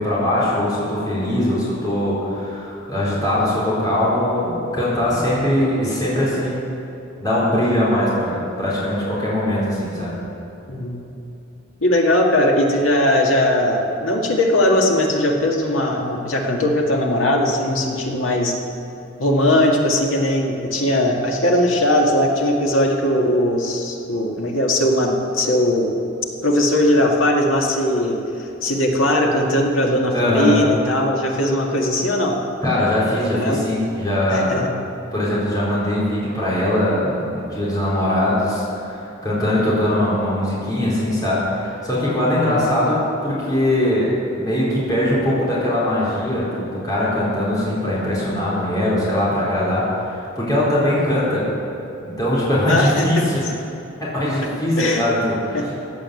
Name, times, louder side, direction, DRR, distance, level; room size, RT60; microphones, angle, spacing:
voice 1, 0.0-6.6 7.2-10.2 30.1-30.5 32.6-34.6 35.1-49.8 50.4-51.4 52.0-53.4 54.0-55.7, left 1 dB, 20° left, -8 dB, 4.1 m, -21 dB
voice 2, 10.7-11.1 11.8-18.6 19.2-25.9 26.4-28.2 28.6-32.4 33.3-33.6 34.3-34.7 42.3-42.7 50.8-50.9 52.7-53.2 54.8-55.1 55.5-55.7, left 1 dB, 85° left, 0 dB, 2.0 m, -19 dB
15.5 x 9.1 x 7.8 m, 2.9 s
head